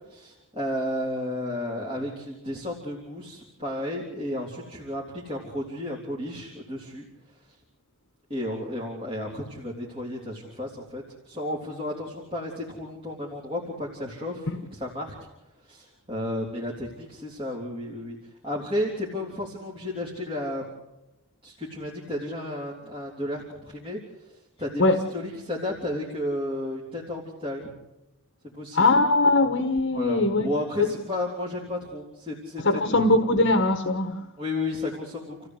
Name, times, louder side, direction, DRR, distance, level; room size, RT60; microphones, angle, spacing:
voice 1, 0.1-7.0 7.5-7.6 8.3-15.1 15.6-18.2 18.4-20.7 21.4-27.7 28.5-28.8 29.9-32.8 34.4-35.5, left 1 dB, 25° right, 3.7 m, -33 dB
voice 2, 28.7-30.4 30.8-30.9 32.6-34.2, left 2 dB, 55° left, 1.4 m, -21 dB
29.5 x 16.0 x 8.2 m
head